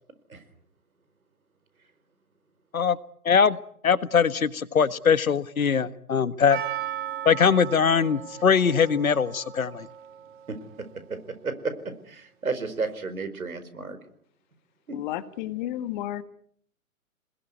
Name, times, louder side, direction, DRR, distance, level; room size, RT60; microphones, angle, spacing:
voice 1, 3.3-3.6 3.8-6.6 7.3-9.9, left 6 dB, 70° left, 16 dB, 1.6 m, -22 dB
Percussion, 6.5-10.9 11.1-11.2, right 11 dB, 35° right, 2.5 m, -37 dB
voice 2, 12.1-14.0 14.9-15.0, right 4 dB, 75° right, 11 dB, 4.8 m, -32 dB
voice 3, 14.9-16.2, left 13 dB, 35° left, 13 dB, 1.7 m, -32 dB
29.0 x 20.5 x 9.5 m, 0.66 s
figure-of-eight pair, 125°, 43 cm